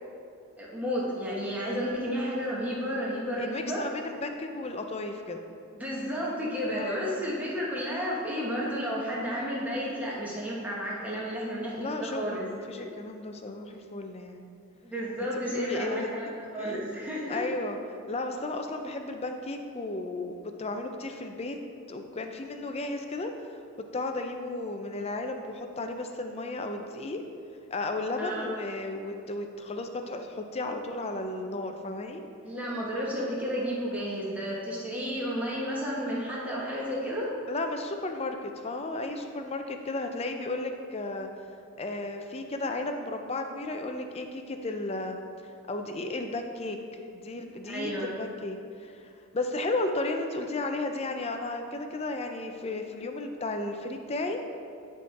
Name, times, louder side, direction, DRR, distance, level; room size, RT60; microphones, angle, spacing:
voice 1, 0.6-3.8 5.8-12.4 12.8-12.9 14.8-16.3 16.5-17.4 28.2-28.5 32.4-37.3 47.7-48.1, equal, 5° right, -6 dB, 1.1 m, -32 dB
voice 2, 3.4-5.4 6.7-7.0 11.8-14.4 15.2-16.1 16.6-16.9 17.3-21.6 21.9-23.6 23.9-27.2 27.7-32.2 37.5-41.3 41.8-45.2 45.7-54.4, left 2 dB, 25° left, 5 dB, 0.4 m, -34 dB
10.0 x 3.6 x 4.1 m, 2.5 s
head